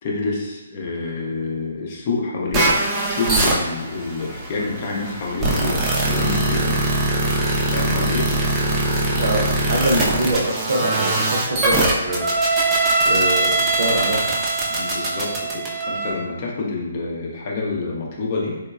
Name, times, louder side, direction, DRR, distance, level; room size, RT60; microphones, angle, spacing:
voice 1, 0.0-2.7 3.1-5.8 6.1-6.8 7.7-8.3 9.7-10.0 14.8-18.6, left 3 dB, 40° left, -3 dB, 0.6 m, -27 dB
sound 1, 2.5-16.1, right 2 dB, 15° right, 0.5 m, -21 dB
voice 2, 9.2-12.3 13.0-14.4, right 1 dB, 60° right, -1 dB, 0.6 m, -24 dB
3.0 x 2.2 x 2.4 m, 1.1 s
hypercardioid pair, 145°, 0 cm